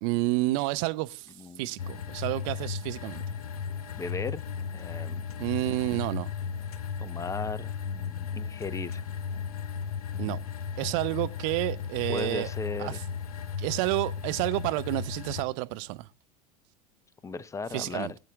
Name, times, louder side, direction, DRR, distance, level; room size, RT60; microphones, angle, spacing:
voice 1, 0.0-1.3 1.6-3.2 5.4-6.3 10.2-10.4 10.8-12.5 12.8-13.0 13.6-16.1 17.7-18.1, right 19 dB, 55° right, 0.8 m, -29 dB
voice 2, 1.4-1.7 3.9-4.4 4.7-5.2 7.0-9.0 10.1-10.4 12.1-13.0 17.2-18.2, left 4 dB, 15° left, 0.7 m, -37 dB
sound 1, 1.8-15.4, left 6 dB, 75° left, 1.2 m, -35 dB
22.5 x 7.5 x 3.5 m
figure-of-eight pair, 80°, 19 cm